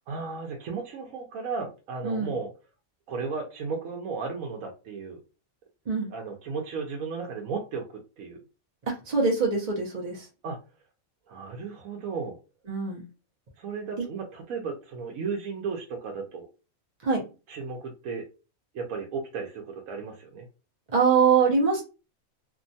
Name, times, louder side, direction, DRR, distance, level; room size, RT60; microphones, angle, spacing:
voice 1, 0.1-2.5 3.1-5.2 6.1-7.9 8.2-8.4 10.4-10.6 11.3-12.4 13.6-16.5 17.5-18.2 18.7-20.5, right 5 dB, 75° right, 1 dB, 1.1 m, -34 dB
voice 2, 2.0-2.3 5.9-6.1 8.9-10.3 12.7-13.0 17.0-17.2 20.9-21.8, right 5 dB, 40° right, -1 dB, 0.6 m, -23 dB
2.9 x 2.2 x 2.6 m, 0.31 s
omnidirectional pair, 1.4 m